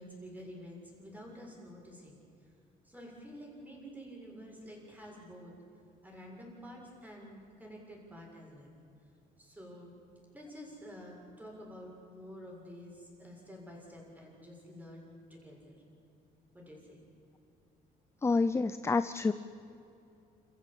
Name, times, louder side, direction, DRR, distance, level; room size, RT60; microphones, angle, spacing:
voice 1, 0.0-2.2 2.9-5.5 6.0-8.8 9.4-9.9 10.3-15.8 16.5-17.0, equal, 10° right, -1 dB, 7.0 m, -49 dB
voice 2, 18.2-19.3, left 4 dB, 15° left, 13 dB, 0.6 m, -28 dB
28.0 x 15.0 x 8.8 m, 2.8 s
cardioid pair, 120°, 17 cm